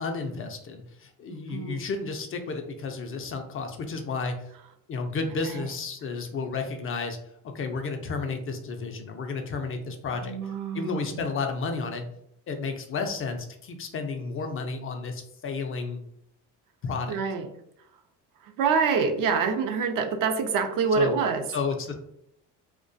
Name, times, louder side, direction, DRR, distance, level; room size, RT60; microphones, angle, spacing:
voice 1, 0.0-4.5 4.9-7.2 7.4-10.4 10.7-12.1 12.5-16.0 16.8-17.2 21.0-21.2 21.5-21.9, left 4 dB, 35° left, 5 dB, 0.4 m, -32 dB
voice 2, 1.3-1.8 5.4-5.7 10.1-11.2 17.1-17.5 18.4-21.4, right 5 dB, 60° right, 5 dB, 0.5 m, -26 dB
2.3 x 2.2 x 2.5 m, 0.73 s
supercardioid pair, 80°, 37 cm